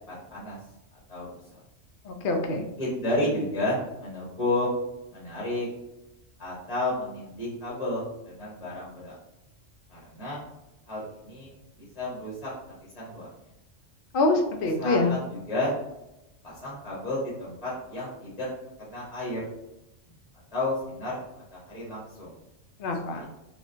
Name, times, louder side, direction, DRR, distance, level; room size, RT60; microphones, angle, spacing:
voice 1, 0.1-0.6 1.1-1.3 2.8-4.7 5.1-5.7 6.4-9.2 9.9-10.4 10.9-12.5 12.9-13.3 14.8-15.8 16.4-18.5 18.8-19.4 20.5-21.2 21.5-22.3 23.1-23.3, left 1 dB, 35° left, -6 dB, 0.9 m, -31 dB
voice 2, 2.0-2.6 14.1-15.1 22.8-23.3, left 2 dB, 60° left, 3 dB, 0.6 m, -25 dB
3.3 x 2.4 x 2.5 m, 0.92 s
omnidirectional pair, 1.2 m